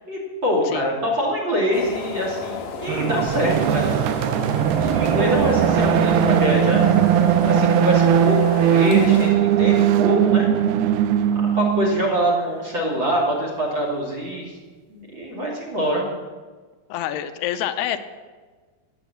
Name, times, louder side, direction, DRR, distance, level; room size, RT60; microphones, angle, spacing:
voice 1, 0.1-3.9 4.5-6.9 7.4-10.5 11.5-14.5 14.9-16.0, equal, 35° right, 0 dB, 2.9 m, -24 dB
sound 1, 1.7-9.3, left 5 dB, 65° left, 1.9 m, -32 dB
sound 2, 2.9-12.1, right 10 dB, 90° right, 2.7 m, -19 dB
voice 2, 16.9-18.0, left 11 dB, 90° left, 10 dB, 2.8 m, -27 dB
13.5 x 8.8 x 8.0 m, 1.4 s
omnidirectional pair, 4.6 m